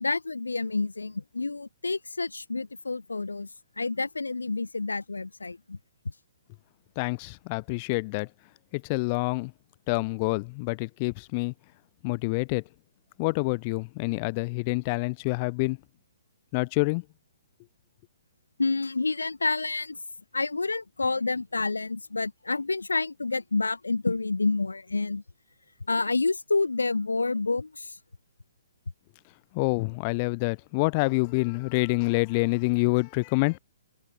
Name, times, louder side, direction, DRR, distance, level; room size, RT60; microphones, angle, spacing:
voice 1, 0.0-3.5 3.8-5.8 18.6-20.0 20.3-25.2 25.9-28.0, left 3 dB, 80° left, 0.6 m, -28 dB
voice 2, 7.0-8.3 8.7-9.5 9.9-11.5 12.0-12.6 13.2-15.8 16.5-17.0 29.5-33.6, left 28 dB, 35° left, 0.7 m, -27 dB
figure-of-eight pair, 125°, 0 cm